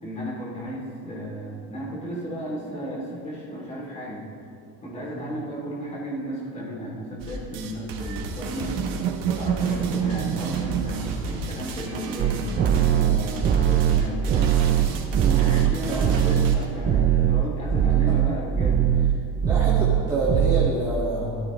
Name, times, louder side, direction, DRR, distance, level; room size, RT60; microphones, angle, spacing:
voice 1, 0.0-4.2 4.8-8.8 9.3-14.6 15.3-19.2, equal, 20° left, -4 dB, 2.8 m, -34 dB
sound 1, 7.2-16.6, right 2 dB, 65° right, 1.9 m, -35 dB
sound 2, 8.0-13.6 13.9-16.2, right 8 dB, 80° right, 0.9 m, -31 dB
sound 3, 12.2-17.4 17.7-18.3 18.6-19.1 19.4-20.0 20.3-20.7, right 9 dB, 30° right, 0.5 m, -20 dB
voice 2, 15.2-16.1 18.1-18.2 19.4-21.3, right 2 dB, 10° right, -8 dB, 1.8 m, -28 dB
16.5 x 13.5 x 3.1 m, 2.4 s
cardioid pair, 175°, 37 cm